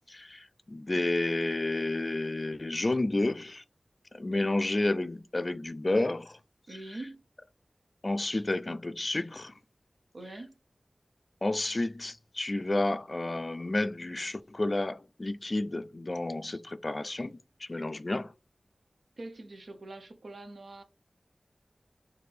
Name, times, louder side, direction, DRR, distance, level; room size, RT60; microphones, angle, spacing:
voice 1, 0.1-3.6 4.1-6.4 8.0-9.5 11.4-18.3, left 2 dB, 40° left, 0.3 m, -31 dB
voice 2, 4.3-4.6 6.7-7.2 10.1-10.6 19.2-20.8, right 2 dB, 80° right, 0.7 m, -44 dB
4.2 x 2.7 x 3.3 m
wide cardioid pair, 60°, 0 cm